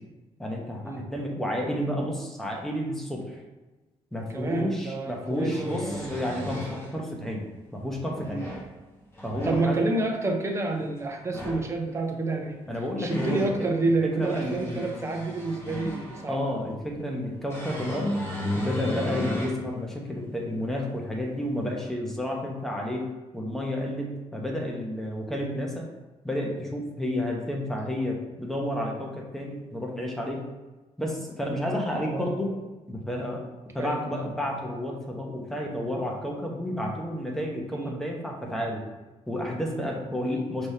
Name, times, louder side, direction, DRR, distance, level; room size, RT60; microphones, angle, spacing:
voice 1, 0.4-3.4 4.1-7.4 7.7-8.5 9.2-9.9 12.7-13.5 14.0-14.9 16.3-18.2 18.5-25.9 26.2-30.5 31.0-32.6 32.9-33.5 33.7-38.8 39.3-40.7, left 1 dB, 5° left, -1 dB, 0.9 m, -31 dB
sound 1, 4.3-4.4 5.2-6.9 7.9-8.7 9.1-9.6 11.2-11.7 12.6-13.5 14.1-16.3 17.5-19.6 20.1-20.2 21.8-21.9, left 1 dB, 20° left, 1.2 m, -34 dB
voice 2, 4.3-6.2 8.3-8.5 9.4-12.6 13.0-16.6 19.2-19.4 31.9-32.6 33.8-34.3 37.7-38.0 40.2-40.5, right 2 dB, 25° right, 2 dB, 0.7 m, -29 dB
5.3 x 3.3 x 2.8 m, 1.2 s
cardioid pair, 120°, 12 cm